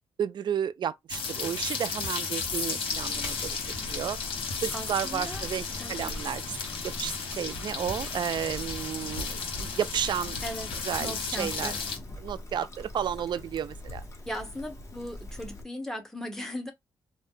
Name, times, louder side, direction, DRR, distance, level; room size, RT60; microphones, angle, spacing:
voice 1, 0.2-3.5 3.8-4.2 4.6-6.6 6.8-10.4 10.8-11.7 12.2-14.0, right 9 dB, 55° right, 0.4 m, -32 dB
sound 1, 1.1-12.0, left 5 dB, 75° left, 1.2 m, -34 dB
Trickle dribble, 2.9-15.6, left 1 dB, 30° left, 1.4 m, -44 dB
voice 2, 4.7-5.4 5.8-6.2 10.4-11.8 14.3-16.7, equal, 5° left, 1.1 m, -38 dB
2.6 x 2.1 x 3.8 m
cardioid pair, 65°, 9 cm